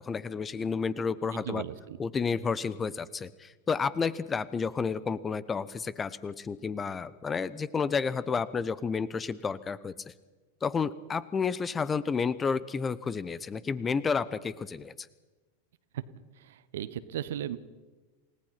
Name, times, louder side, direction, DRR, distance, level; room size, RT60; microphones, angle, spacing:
voice 1, 0.0-1.6 2.0-10.1 10.6-15.1, left 5 dB, 20° left, 18 dB, 0.8 m, -31 dB
voice 2, 1.3-2.0 15.9-16.0 16.4-17.6, right 11 dB, 60° right, 15 dB, 1.2 m, -36 dB
28.5 x 18.0 x 5.9 m, 1.2 s
figure-of-eight pair, 90°, 0 cm